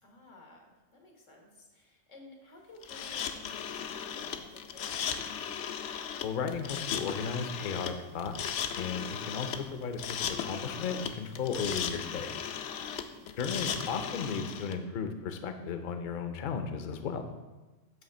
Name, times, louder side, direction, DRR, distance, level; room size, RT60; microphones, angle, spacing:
voice 1, 0.0-5.3 13.0-13.4, left 2 dB, 90° left, 1 dB, 1.8 m, -54 dB
sound 1, 2.8-14.7, left 8 dB, 75° left, 0.9 m, -37 dB
voice 2, 6.2-8.3 8.7-12.3 13.4-17.3, left 6 dB, 50° left, 7 dB, 0.7 m, -35 dB
9.1 x 3.3 x 6.5 m, 1.2 s
omnidirectional pair, 1.3 m